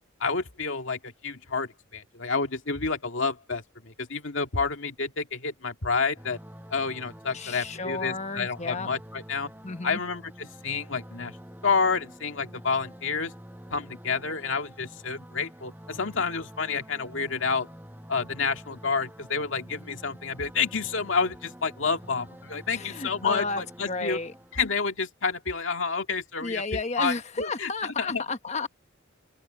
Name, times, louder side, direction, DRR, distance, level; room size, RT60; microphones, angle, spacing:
voice 1, 0.2-6.4 6.7-9.5 9.8-11.3 11.6-13.3 13.7-17.7 18.1-24.2 24.5-28.2, left 5 dB, 75° left, 2.1 m, -29 dB
sound 1, 6.2-25.1, equal, 10° right, 5.6 m, -47 dB
voice 2, 7.3-8.9 9.6-10.0 22.7-24.3 26.4-28.7, left 3 dB, 35° left, 1.2 m, -32 dB
open air
head